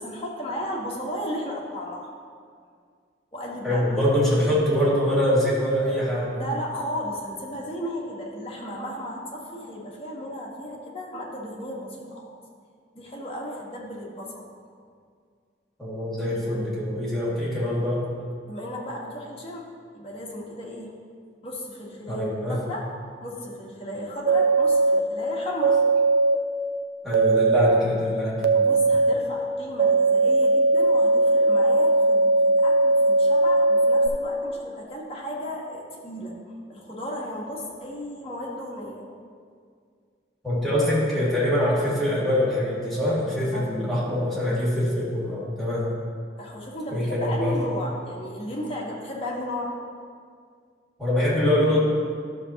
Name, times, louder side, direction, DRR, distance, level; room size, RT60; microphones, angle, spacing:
voice 1, 0.0-2.1 3.3-3.8 6.3-12.3 12.9-14.4 18.5-19.7 19.9-20.9 21.4-22.9 23.2-25.8 28.5-39.0 43.5-44.0 46.4-49.8, equal, 35° left, -3 dB, 1.4 m, -34 dB
voice 2, 3.6-6.3 15.8-18.1 22.1-22.6 27.0-28.4 40.4-45.9 46.9-47.6 51.0-51.8, left 1 dB, ahead, -9 dB, 2.1 m, -24 dB
sound 1, 24.3-25.0 25.6-26.4 27.1-27.8 28.4-29.1 29.8-34.1, right 2 dB, 75° right, 0.5 m, -19 dB
12.0 x 6.7 x 2.9 m, 2.1 s
head